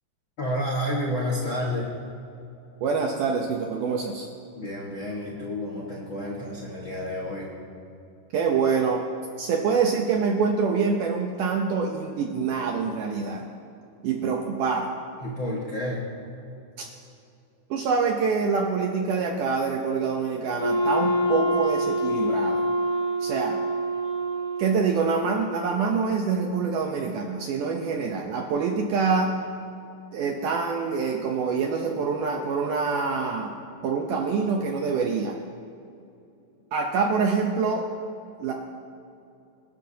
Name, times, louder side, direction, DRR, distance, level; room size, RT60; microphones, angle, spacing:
voice 1, 0.4-1.9 4.6-7.5 15.2-16.1, left 1 dB, 50° left, -5 dB, 1.5 m, -30 dB
voice 2, 2.8-4.3 8.3-9.0 9.4-13.5 14.0-14.9 16.8-16.9 17.7-22.6 23.2-23.6 24.6-29.4 30.1-33.6 33.8-35.4 36.7-37.9 38.4-38.5, right 5 dB, 75° right, 2 dB, 2.0 m, -25 dB
Wind instrument woodwind instrument, 20.5-25.3, equal, 60° right, 0.5 m, -26 dB
25.5 x 10.5 x 2.8 m, 2.7 s
omnidirectional pair, 4.5 m